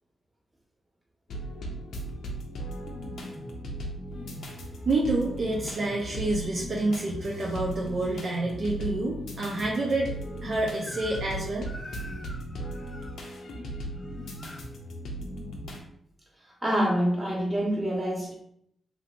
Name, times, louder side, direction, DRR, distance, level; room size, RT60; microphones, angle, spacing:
sound 1, 1.3-15.8, equal, 80° left, 0.6 m, -37 dB
voice 1, 4.9-10.1 10.4-11.7, right 2 dB, 60° right, -3 dB, 0.5 m, -28 dB
Crying sobbing / Screech, 10.8-11.4 11.6-13.1 14.0-14.7, left 1 dB, 20° left, 0.6 m, -44 dB
voice 2, 16.6-18.3, equal, 25° right, -3 dB, 1.3 m, -26 dB
3.0 x 2.8 x 2.5 m, 0.72 s
cardioid pair, 70°, 0 cm